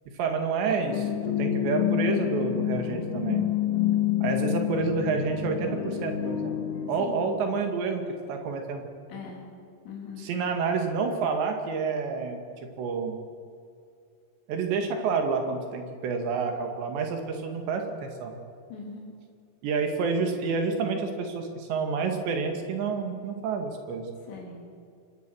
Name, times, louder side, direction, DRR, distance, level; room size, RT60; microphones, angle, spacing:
voice 1, 0.2-3.4 4.2-6.6 6.9-8.0 8.3-8.8 10.2-12.4 12.8-13.1 14.5-18.3 19.6-24.1, right 5 dB, 85° right, 4 dB, 4.4 m, -29 dB
sound 1, 0.9-7.3, left 11 dB, 60° left, 2.3 m, -28 dB
voice 2, 9.1-9.4 9.9-10.3 18.7-19.1 24.3-24.6, left 5 dB, 90° left, -2 dB, 5.5 m, -41 dB
26.0 x 19.5 x 6.4 m, 2.3 s
omnidirectional pair, 4.9 m